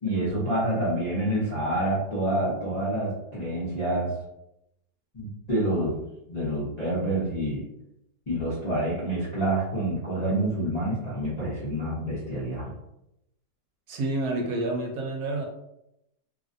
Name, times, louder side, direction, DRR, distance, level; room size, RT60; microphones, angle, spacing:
voice 1, 0.0-4.1 5.1-6.0 6.3-7.7 8.3-12.7, right 1 dB, 40° left, -9 dB, 0.6 m, -27 dB
voice 2, 13.9-15.5, right 2 dB, 70° right, 0 dB, 1.1 m, -29 dB
3.0 x 2.5 x 2.5 m, 0.85 s
omnidirectional pair, 1.8 m